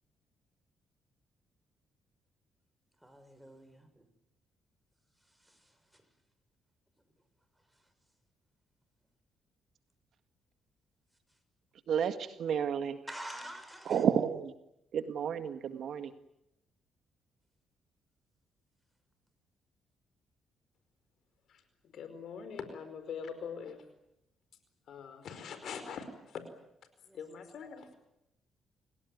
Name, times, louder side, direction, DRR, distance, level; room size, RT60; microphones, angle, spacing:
voice 1, 3.0-4.1 5.2-6.0 7.7-7.8 13.1-14.0 27.0-27.5, right 1 dB, 5° right, 7 dB, 6.3 m, -48 dB
voice 2, 11.9-13.0 13.9-14.5 14.9-16.1, right 8 dB, 65° right, 10 dB, 1.8 m, -31 dB
voice 3, 21.5-23.8 24.9-26.4 27.1-27.9, left 6 dB, 65° left, 10 dB, 4.7 m, -43 dB
29.5 x 17.5 x 9.4 m, 0.84 s
cardioid pair, 90°, 0 cm